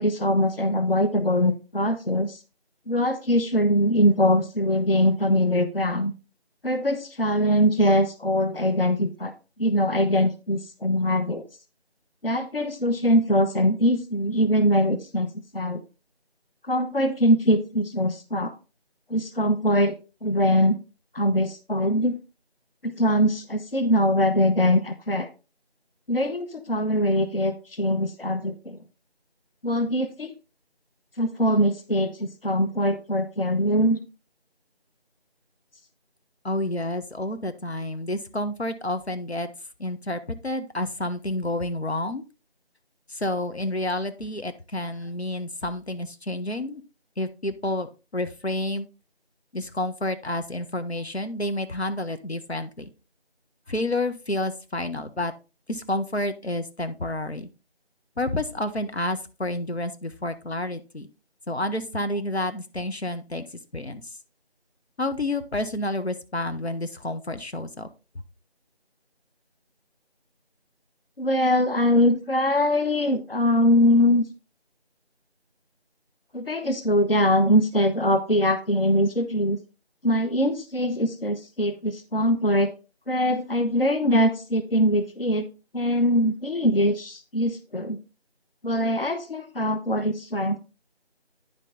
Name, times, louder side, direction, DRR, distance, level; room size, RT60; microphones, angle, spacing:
voice 1, 0.0-2.4 2.9-6.1 6.6-9.3 9.6-11.4 12.2-15.8 16.7-18.5 19.1-19.9 20.2-20.8 21.1-22.2 22.8-25.3 26.1-28.8 29.6-30.3 31.2-34.0 71.2-74.2 76.3-79.6 80.0-82.7 83.1-85.5 85.7-88.0 88.6-90.6, equal, 60° left, 9 dB, 1.0 m, -22 dB
voice 2, 36.4-39.5 39.8-42.2 43.1-46.8 47.2-48.9 49.5-52.9 53.7-55.3 55.7-57.5 58.2-61.1 61.5-64.1 65.0-67.9, left 1 dB, 75° left, 9 dB, 1.1 m, -29 dB
9.9 x 5.3 x 3.9 m, 0.30 s
figure-of-eight pair, 175°, 32 cm